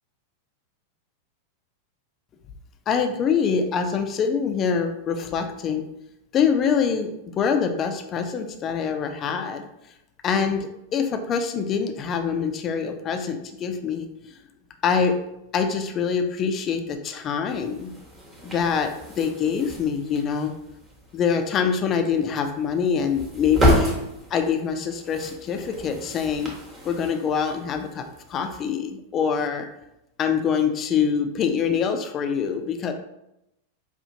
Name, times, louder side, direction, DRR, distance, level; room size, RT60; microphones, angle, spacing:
voice 1, 2.9-5.9 6.3-9.6 10.2-14.1 14.8-15.2 15.5-17.9 18.4-18.9 19.2-20.5 21.1-24.0 24.3-26.5 26.8-28.0 28.3-29.7 30.2-32.9, left 6 dB, 30° left, 6 dB, 0.4 m, -24 dB
sound 1, 17.5-28.6, equal, 15° right, 1.1 m, -30 dB
5.0 x 2.4 x 2.7 m, 0.86 s
figure-of-eight pair, 90°, 0 cm